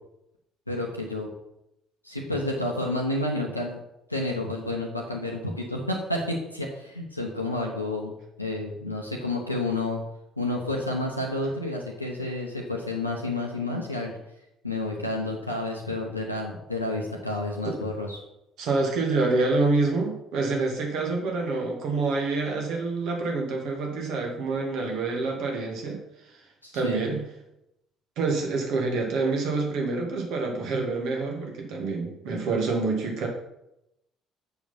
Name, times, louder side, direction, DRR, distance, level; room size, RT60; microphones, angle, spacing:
voice 1, 0.7-1.3 2.0-3.8 4.1-10.0 10.4-14.2 14.6-18.2 26.6-27.1, left 2 dB, 90° left, 0 dB, 0.9 m, -30 dB
voice 2, 18.6-26.0 26.7-27.2 28.2-33.3, right 3 dB, 55° right, 1 dB, 2.2 m, -27 dB
7.1 x 6.4 x 5.7 m, 0.83 s
figure-of-eight pair, 50°, 0 cm